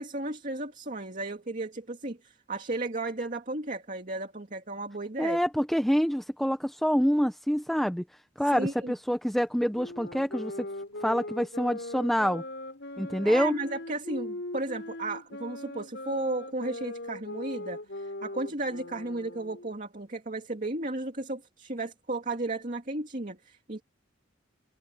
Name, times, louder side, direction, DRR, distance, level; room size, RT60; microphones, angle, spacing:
voice 1, 0.0-5.4 8.5-8.9 13.2-23.8, right 2 dB, 45° right, 2.5 m, -34 dB
voice 2, 5.2-8.0 8.4-10.7 11.0-12.4 13.0-13.6, equal, ahead, 0.8 m, -26 dB
sound 1, 9.7-19.7, left 1 dB, 65° left, 6.3 m, -40 dB
head